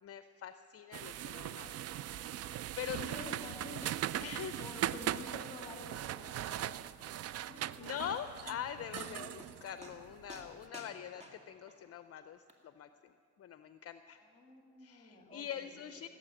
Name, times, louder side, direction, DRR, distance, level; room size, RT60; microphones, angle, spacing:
voice 1, 0.0-1.7 2.4-3.4 4.2-4.6 7.8-14.2 14.8-16.1, left 9 dB, 50° left, 10 dB, 0.5 m, -44 dB
sound 1, 0.9-10.5, right 12 dB, 55° right, 0.4 m, -40 dB
voice 2, 3.0-3.9 4.6-7.2 7.5-7.9 9.0-9.3 14.1-15.8, left 2 dB, 15° left, 2 dB, 2.9 m, -50 dB
sound 2, 3.4-3.6 3.8-4.0 4.3-4.4 4.7-4.8 5.2-5.3 5.7-5.8 6.3-6.4 8.1-8.2 8.5-8.7 9.0-9.5 9.8-10.0 10.3-11.8 12.5-12.6, equal, 20° right, 2.1 m, -52 dB
18.0 x 8.2 x 8.8 m, 2.4 s
cardioid pair, 90°, 30 cm